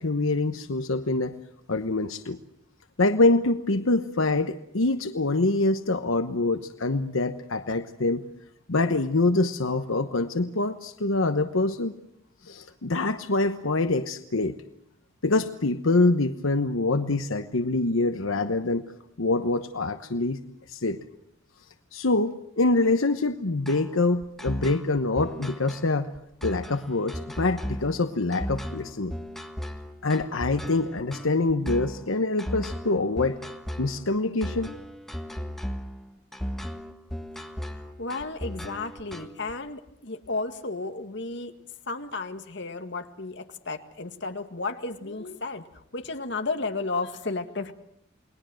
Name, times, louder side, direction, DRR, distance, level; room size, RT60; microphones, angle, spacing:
voice 1, 0.0-1.4 1.7-2.4 3.0-8.2 8.7-11.9 12.4-14.5 15.2-18.9 19.2-20.4 20.7-21.0 21.9-26.1 26.4-29.1 30.0-33.4 33.8-34.7, left 2 dB, 85° left, 9 dB, 1.1 m, -25 dB
sound 1, 23.7-39.5, equal, ahead, 1.5 m, -36 dB
voice 2, 38.0-41.5 41.9-47.7, left 3 dB, 60° left, 7 dB, 1.9 m, -33 dB
29.5 x 20.5 x 7.8 m, 0.75 s
head